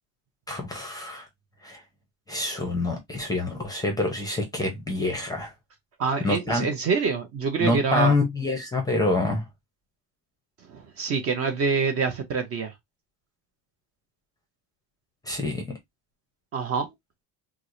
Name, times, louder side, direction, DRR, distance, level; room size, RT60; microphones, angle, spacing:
voice 1, 0.5-1.3 1.6-1.8 2.3-5.5 6.2-6.6 7.6-9.4 15.3-15.6, left 2 dB, 10° left, 0.6 m, -26 dB
voice 2, 6.0-8.1 10.6-12.7 16.5-16.9, right 5 dB, 35° right, 0.6 m, -26 dB
4.6 x 2.1 x 2.5 m
cardioid pair, 170°, 41 cm